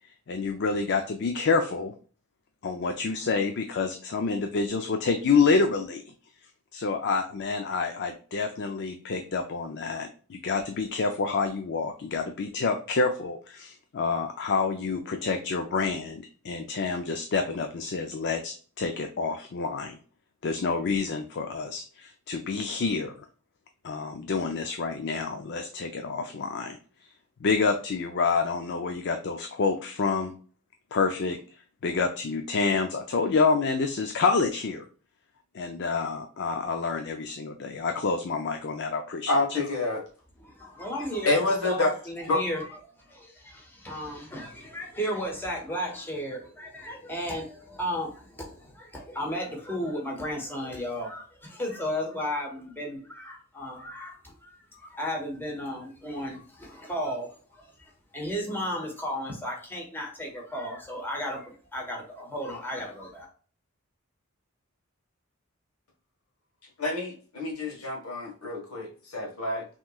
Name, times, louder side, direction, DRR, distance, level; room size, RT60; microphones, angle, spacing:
voice 1, 0.3-1.9 2.6-6.0 6.7-20.0 20.4-23.1 23.8-27.1 27.4-30.3 30.9-31.4 31.8-34.9 35.5-39.3, left 4 dB, 55° left, 5 dB, 0.5 m, -28 dB
voice 2, 39.3-40.0 40.9-41.9 42.3-42.4 66.8-69.6, left 2 dB, 85° left, 0 dB, 1.5 m, -28 dB
voice 3, 40.4-42.6 43.1-54.5 54.8-57.6 58.1-63.3, equal, 10° left, -1 dB, 1.2 m, -34 dB
5.7 x 3.0 x 2.3 m, 0.41 s
head